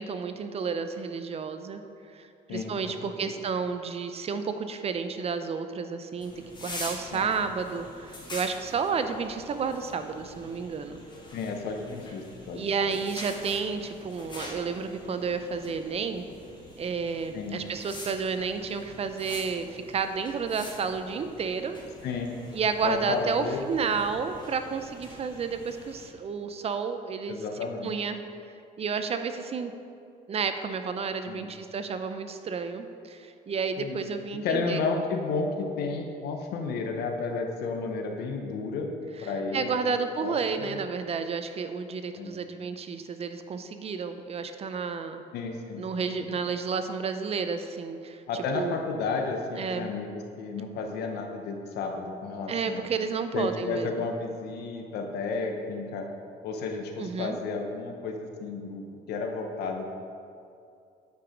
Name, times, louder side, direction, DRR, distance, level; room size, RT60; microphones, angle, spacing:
voice 1, 0.0-1.8 2.1-6.3 6.6-11.0 12.5-16.2 16.8-21.8 22.5-27.4 27.8-28.2 28.8-29.7 30.3-34.8 39.5-45.2 45.8-48.2 48.5-48.8 49.6-49.9 52.5-53.9 57.0-57.4, right 5 dB, 35° right, 9 dB, 0.5 m, -31 dB
sound 1, 6.2-26.1, left 1 dB, 25° left, 1.6 m, -45 dB
voice 2, 11.3-12.9 17.3-17.7 22.0-22.5 22.8-23.8 27.3-27.9 31.3-31.5 33.8-34.0 34.4-38.9 39.2-40.8 42.2-42.4 45.3-46.3 48.3-52.8 53.3-56.1 56.4-58.8 59.1-59.9, left 4 dB, 75° left, 3 dB, 0.9 m, -32 dB
9.2 x 4.8 x 5.1 m, 2.5 s
cardioid pair, 110°, 17 cm